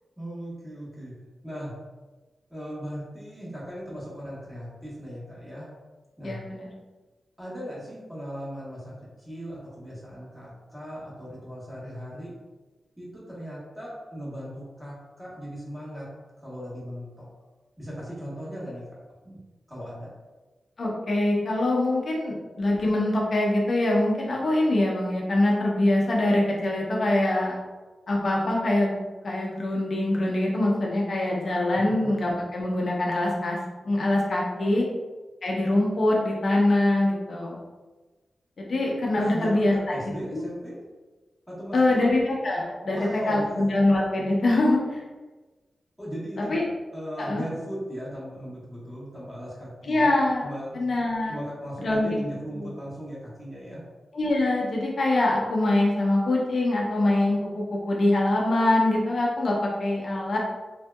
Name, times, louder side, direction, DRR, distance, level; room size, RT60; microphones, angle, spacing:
voice 1, 0.2-1.1 1.4-1.7 2.5-5.7 6.2-6.4 7.4-12.3 13.0-16.1 16.4-17.3 17.8-18.8 19.2-19.4 19.7-20.1 32.0-32.1 34.4-34.9 39.2-40.8 41.5-42.2 42.9-43.6 46.0-46.5 46.9-50.1 50.4-53.8, equal, 5° right, -7 dB, 1.2 m, -38 dB
voice 2, 6.2-6.6 20.8-27.5 28.1-28.9 29.2-33.6 33.8-34.9 35.4-37.6 38.6-40.0 40.3-40.4 41.7-43.0 43.3-45.0 46.5-46.6 47.2-47.4 49.9-50.5 50.7-51.4 51.8-52.2 52.5-52.6 54.1-59.5 59.8-60.4, left 1 dB, 55° left, -2 dB, 0.7 m, -24 dB
3.4 x 2.7 x 2.3 m, 1.2 s
wide cardioid pair, 115°, 0 cm